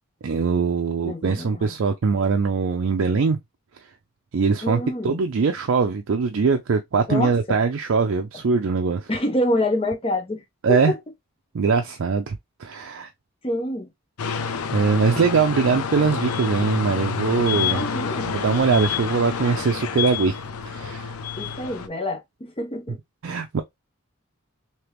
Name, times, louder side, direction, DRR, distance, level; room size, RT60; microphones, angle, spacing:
voice 1, 0.2-3.4 4.3-9.1 10.6-10.9 11.5-13.1 14.7-17.8 18.3-20.4 20.7-21.1 23.2-23.6, right 5 dB, 65° right, 0.4 m, -22 dB
voice 2, 1.1-1.7 4.6-5.2 7.1-7.6 9.1-10.4 10.7-11.0 13.4-13.9 17.7-18.3 21.4-23.0, left 1 dB, 25° left, 0.6 m, -26 dB
sound 1, 14.2-21.9, left 6 dB, 85° left, 0.5 m, -28 dB
3.3 x 2.9 x 3.0 m
head